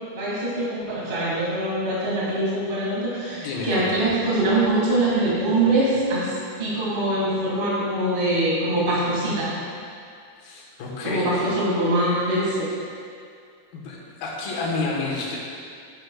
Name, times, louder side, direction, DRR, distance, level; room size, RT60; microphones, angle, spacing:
voice 1, 0.1-9.5 11.0-12.7, right 1 dB, 35° right, -7 dB, 0.7 m, -23 dB
voice 2, 3.3-4.1 10.4-11.5 13.7-15.4, left 3 dB, 90° left, -4 dB, 3.0 m, -30 dB
9.8 x 8.8 x 2.2 m, 2.3 s
omnidirectional pair, 3.9 m